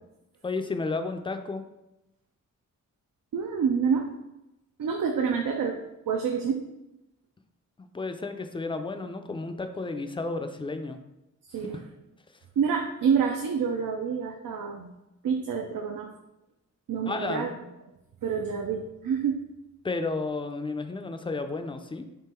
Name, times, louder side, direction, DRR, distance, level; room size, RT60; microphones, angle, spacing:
voice 1, 0.4-1.6 7.8-11.0 17.1-17.5 19.8-22.1, left 3 dB, 15° left, 7 dB, 0.3 m, -32 dB
voice 2, 3.3-4.1 4.8-6.6 11.4-11.8 12.6-14.9 15.2-16.1 16.9-17.5 18.2-19.4, right 6 dB, 90° right, 2 dB, 0.5 m, -27 dB
3.7 x 3.0 x 4.3 m, 0.93 s
wide cardioid pair, 105°, 32 cm